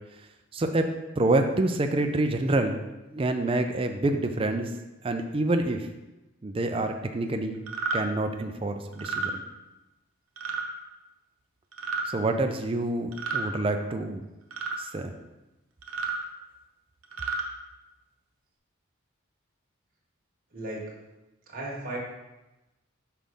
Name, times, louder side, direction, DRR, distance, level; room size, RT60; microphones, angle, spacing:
voice 1, 0.5-0.9 1.2-2.8 3.1-4.7 5.0-5.9 6.4-7.6 7.9-9.4 12.1-14.2 14.8-15.2, right 2 dB, 25° right, 5 dB, 0.4 m, -27 dB
sound 1, 7.7-8.0 8.9-9.3 10.4-10.6 11.7-12.1 13.1-13.5 14.5-14.8 15.8-16.2 17.0-17.4, right 4 dB, 90° right, 0.8 m, -31 dB
voice 2, 20.5-21.0 21.5-22.0, right 2 dB, 45° right, -3 dB, 1.5 m, -35 dB
5.8 x 5.1 x 3.5 m, 1.0 s
head